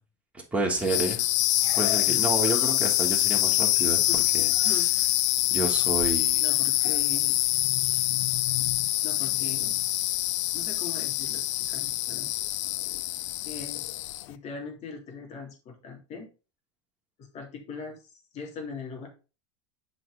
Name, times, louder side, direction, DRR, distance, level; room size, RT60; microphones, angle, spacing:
voice 1, 0.5-1.3 1.8-4.0 4.3-4.5 5.5-6.4, right 2 dB, 10° right, -1 dB, 3.0 m, -29 dB
sound 1, 0.8-14.3, left 17 dB, 75° left, 0.5 m, -25 dB
voice 2, 6.4-7.4 9.0-9.8 10.5-12.3 13.3-13.8 14.3-16.3 17.2-19.1, left 5 dB, 45° left, 2 dB, 3.1 m, -40 dB
7.6 x 5.4 x 3.9 m, 0.31 s
supercardioid pair, 105°, 16 cm